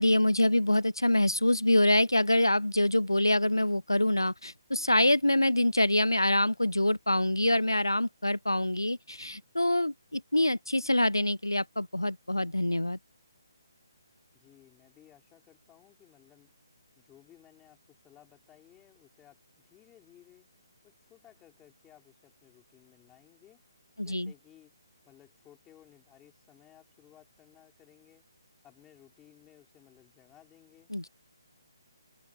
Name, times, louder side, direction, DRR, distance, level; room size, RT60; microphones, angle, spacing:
voice 1, 0.0-13.0 24.0-24.3 30.9-31.1, left 1 dB, 85° left, 0.6 m, -25 dB
voice 2, 14.3-16.5 17.0-20.5 20.8-23.6 24.0-24.7 25.0-28.2 28.6-30.9, left 12 dB, 10° left, 5.5 m, -59 dB
open air
figure-of-eight pair, 140°, 2 cm